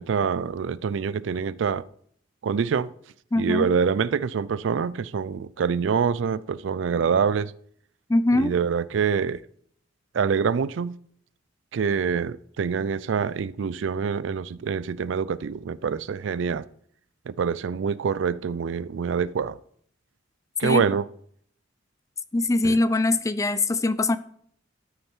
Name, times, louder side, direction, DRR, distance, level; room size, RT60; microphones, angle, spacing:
voice 1, 0.0-1.8 2.4-2.9 3.4-7.5 8.3-9.4 10.1-11.0 11.7-16.7 17.3-19.6 20.6-21.0 22.6-22.8, right 6 dB, 75° right, 0.4 m, -25 dB
voice 2, 3.3-3.7 8.1-8.5 20.6-20.9 22.3-24.2, left 2 dB, 15° left, 0.4 m, -22 dB
13.0 x 6.5 x 4.5 m
head